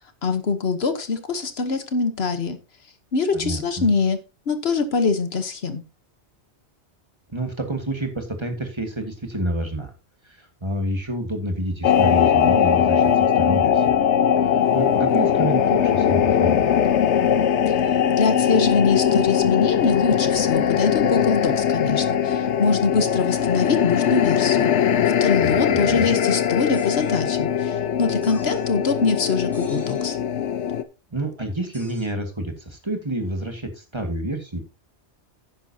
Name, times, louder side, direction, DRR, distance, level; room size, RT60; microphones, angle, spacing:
voice 1, 0.2-2.6 3.1-4.2 4.5-5.8 17.7-17.8 18.1-24.7 25.2-30.2, left 4 dB, 65° left, 9 dB, 1.3 m, -23 dB
voice 2, 3.3-3.9 7.3-9.9 10.2-14.1 14.4-17.0 25.4-26.1 31.1-34.6, right 1 dB, 25° right, 5 dB, 1.7 m, -29 dB
sound 1, 11.8-30.8, left 8 dB, 80° left, 1.1 m, -20 dB
sound 2, 26.7-27.3 28.2-28.7 29.5-30.1 31.7-32.1, right 1 dB, ahead, 3.8 m, -47 dB
11.5 x 9.6 x 2.8 m, 0.29 s
omnidirectional pair, 1.2 m